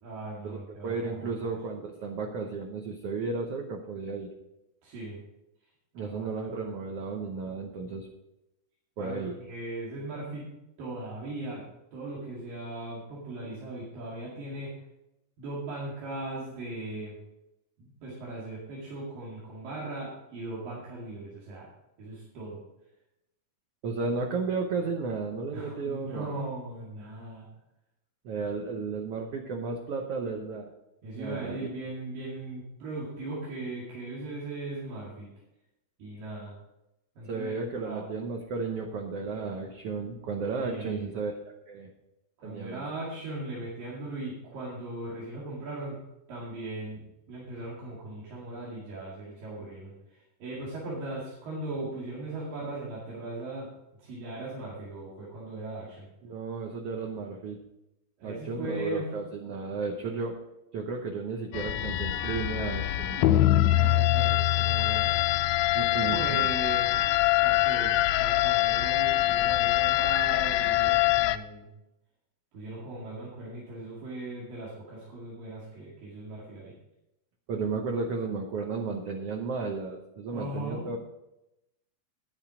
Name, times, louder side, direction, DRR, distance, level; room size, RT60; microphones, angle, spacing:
voice 1, 0.0-1.5 4.8-5.2 6.0-6.3 9.0-10.4 10.8-11.7 11.9-14.7 15.4-17.2 17.8-21.7 22.0-22.6 25.5-27.5 31.0-35.3 36.0-36.5 37.2-37.6 37.8-38.1 40.6-41.1 42.4-46.0 46.3-53.7 54.0-56.1 58.2-59.1 63.6-65.3 65.9-66.9 67.4-71.7 72.5-76.8 80.3-80.9, right 2 dB, 85° right, -7 dB, 4.0 m, -38 dB
voice 2, 0.8-4.3 5.9-8.1 9.0-9.3 23.8-26.4 28.2-30.7 31.1-31.6 37.2-41.3 41.7-41.9 42.4-42.8 56.2-57.6 58.2-60.4 60.7-63.2 65.7-66.4 77.5-81.0, right 4 dB, 65° right, 2 dB, 1.6 m, -33 dB
sound 1, 61.5-71.4, left 14 dB, 80° left, 1.8 m, -24 dB
10.5 x 9.0 x 5.0 m, 0.90 s
omnidirectional pair, 3.8 m